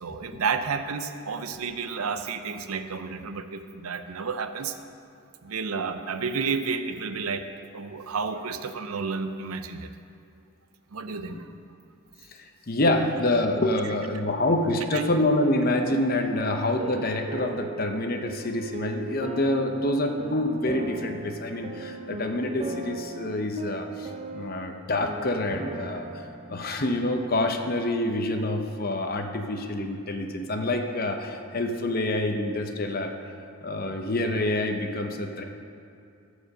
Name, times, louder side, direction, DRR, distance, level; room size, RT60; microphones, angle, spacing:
voice 1, 0.0-4.8 5.4-7.5 7.7-9.9 10.9-11.5 14.9-15.0, right 5 dB, 75° right, 9 dB, 0.6 m, -31 dB
voice 2, 12.3-33.3 33.6-35.4, left 1 dB, 40° left, 5 dB, 0.7 m, -27 dB
sound 1, 15.1-27.3, right 2 dB, 25° right, 0.5 m, -39 dB
14.0 x 5.0 x 6.6 m, 2.5 s
head